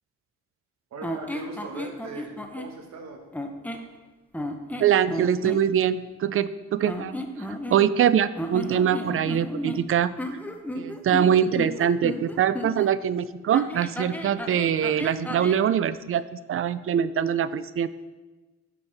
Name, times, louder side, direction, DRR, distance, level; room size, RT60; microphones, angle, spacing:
voice 1, 0.9-3.2, right 3 dB, 65° right, 3 dB, 1.5 m, -39 dB
sound 1, 1.0-2.7 3.3-3.9 4.3-5.6 6.8-8.1 8.4-12.9 13.5-15.6, equal, 5° left, 0.8 m, -34 dB
voice 2, 4.8-10.1 10.7-17.9, right 9 dB, 45° right, 15 dB, 0.4 m, -23 dB
10.5 x 6.3 x 3.4 m, 1.2 s
cardioid pair, 90°, 30 cm